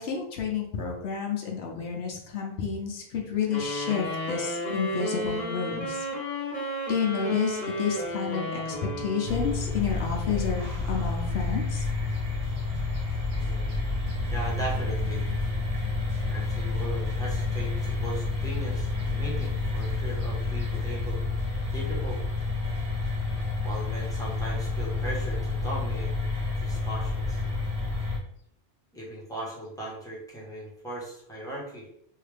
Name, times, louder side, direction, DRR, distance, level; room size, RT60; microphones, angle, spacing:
voice 1, 0.0-6.1 6.9-11.9, left 6 dB, 90° left, 0 dB, 1.0 m, -30 dB
sound 1, 3.5-9.9, left 1 dB, 45° left, 1.1 m, -32 dB
sound 2, 9.2-28.2, left 3 dB, 85° right, 1.3 m, -29 dB
sound 3, 10.1-15.4, right 2 dB, 25° right, 0.6 m, -44 dB
voice 2, 13.3-13.8 14.3-15.3 16.3-21.2 21.7-22.2 23.6-26.1 26.6-27.4 28.9-31.9, right 1 dB, 5° left, -5 dB, 1.0 m, -38 dB
3.3 x 2.8 x 3.3 m, 0.72 s
omnidirectional pair, 1.0 m